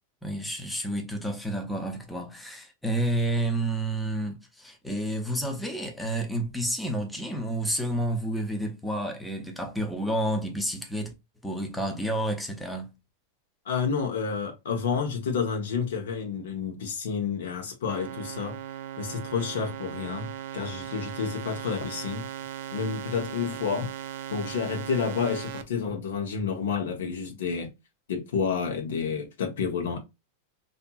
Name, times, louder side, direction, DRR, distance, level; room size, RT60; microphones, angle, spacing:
voice 1, 0.2-11.1 11.4-13.0, right 1 dB, ahead, 0.6 m, -30 dB
voice 2, 13.7-18.5 19.0-22.3 22.7-23.9 24.3-27.7 28.1-30.0, left 6 dB, 90° left, 0.8 m, -30 dB
sound 1, 17.9-25.6, right 10 dB, 60° right, 0.4 m, -38 dB
2.8 x 2.6 x 2.2 m
supercardioid pair, 145°, 0 cm